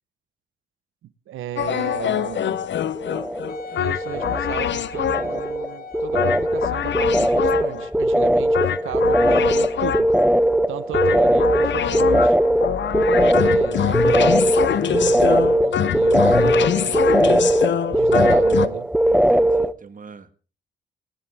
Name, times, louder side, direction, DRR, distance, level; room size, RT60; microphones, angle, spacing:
voice 1, 1.3-2.7 3.7-10.2 10.7-12.4 13.3-17.3 17.9-18.9, right 12 dB, 80° right, 16 dB, 1.0 m, -34 dB
sound 1, 1.6-5.5 6.1-7.9 8.5-10.3 10.9-18.7, left 9 dB, 65° left, 0.9 m, -24 dB
sound 2, 2.1-2.7 2.9-3.7 3.9-19.7, right 1 dB, 5° right, 1.0 m, -20 dB
Wind instrument woodwind instrument, 3.5-7.8 8.5-8.6, left 4 dB, 45° left, 1.5 m, -40 dB
voice 2, 19.1-20.3, right 5 dB, 40° right, 11 dB, 1.6 m, -43 dB
19.5 x 18.0 x 3.5 m, 0.37 s
supercardioid pair, 55°, 20 cm